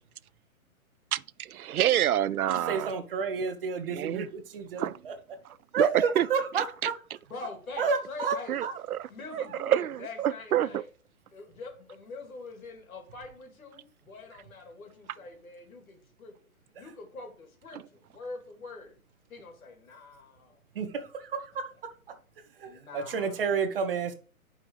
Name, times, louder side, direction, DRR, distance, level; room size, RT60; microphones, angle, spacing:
voice 1, 1.1-2.9 3.9-4.3 4.8-5.0 5.8-5.9 6.2-6.3 8.5-8.7 8.9-9.1 9.3-10.7, right 11 dB, 80° right, 0.5 m, -27 dB
voice 2, 2.5-5.2 5.7-6.9 7.8-8.4 8.6-8.7 20.7-21.7 22.6-24.1, right 5 dB, 40° right, 1.1 m, -30 dB
voice 3, 7.2-8.6 9.1-10.9 11.3-16.3 16.8-19.0 19.3-20.6 22.6-23.6, left 3 dB, 70° left, 3.2 m, -44 dB
10.5 x 5.3 x 3.2 m
hypercardioid pair, 160°, 43 cm